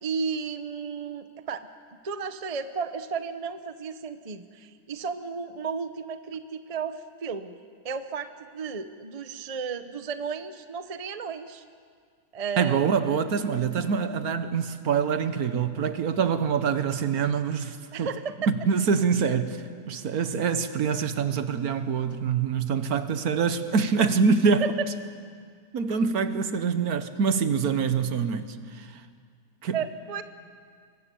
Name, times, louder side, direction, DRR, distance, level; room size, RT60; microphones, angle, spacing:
voice 1, 0.0-1.7 2.0-7.6 7.8-11.6 12.3-12.9 17.9-18.3 24.6-24.7 29.7-30.2, right 5 dB, 30° right, 0.7 m, -33 dB
voice 2, 12.6-18.1 18.5-24.7 25.7-29.0 29.6-29.8, right 6 dB, 65° right, 1.5 m, -25 dB
25.0 x 23.0 x 7.0 m
omnidirectional pair, 1.8 m